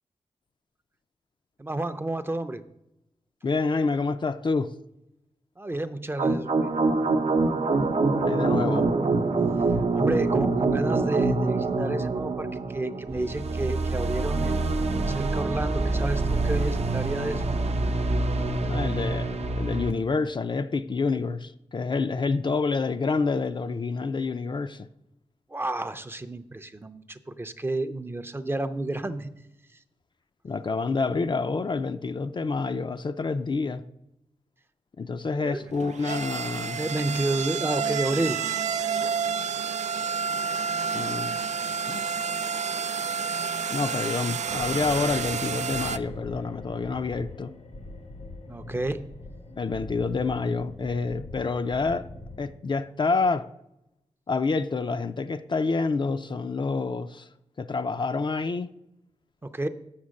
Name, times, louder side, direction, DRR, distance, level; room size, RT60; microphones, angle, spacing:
voice 1, 1.6-2.6 5.6-6.7 9.9-17.6 25.5-29.3 35.3-35.6 36.8-38.4 48.5-49.1 59.4-59.7, right 2 dB, 20° right, 0.5 m, -31 dB
voice 2, 3.4-4.7 8.2-8.9 18.7-24.9 30.4-33.8 35.0-36.8 40.9-41.3 41.9-42.0 43.7-47.5 49.6-52.1 52.4-53.5 54.3-57.3 57.6-58.7, left 4 dB, 40° left, 0.4 m, -28 dB
sound 1, 6.2-19.9, right 3 dB, 65° right, 0.7 m, -25 dB
sound 2, 35.6-46.0, right 6 dB, 90° right, 0.4 m, -29 dB
sound 3, 44.5-52.6, left 2 dB, 85° left, 1.4 m, -42 dB
7.4 x 7.2 x 6.4 m
wide cardioid pair, 115°, 12 cm